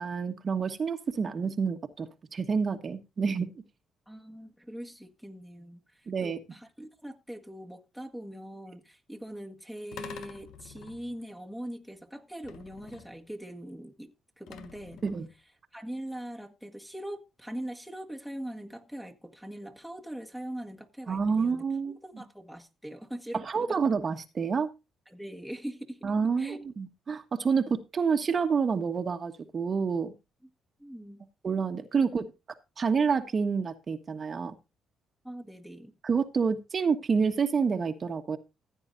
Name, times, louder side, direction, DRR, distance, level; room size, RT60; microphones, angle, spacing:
voice 1, 0.0-3.5 6.1-6.4 15.0-15.3 21.1-22.2 23.3-24.7 26.0-30.1 31.4-32.3 32.8-34.6 36.0-38.4, right 5 dB, 40° right, 1.3 m, -28 dB
voice 2, 4.1-14.1 14.4-15.0 15.7-23.8 25.1-26.0 26.4-26.6 30.8-31.2 35.2-35.9, right 1 dB, ahead, 1.6 m, -42 dB
sound 1, 9.9-11.3 12.4-13.3 14.5-15.4, left 8 dB, 80° left, 1.1 m, -47 dB
15.5 x 8.9 x 2.7 m
cardioid pair, 90°, 0 cm